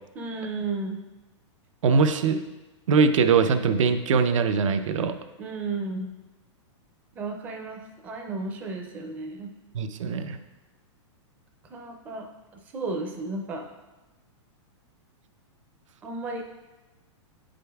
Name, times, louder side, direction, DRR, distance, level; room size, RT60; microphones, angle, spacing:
voice 1, 0.1-1.0 5.4-6.1 7.2-9.5 11.7-12.3 12.5-13.6 16.0-16.4, right 3 dB, 10° right, 2 dB, 0.4 m, -33 dB
voice 2, 1.8-2.4 2.9-5.1 9.7-10.4, right 5 dB, 80° right, 9 dB, 0.5 m, -22 dB
8.5 x 5.0 x 2.3 m, 1.1 s
supercardioid pair, 170°, 16 cm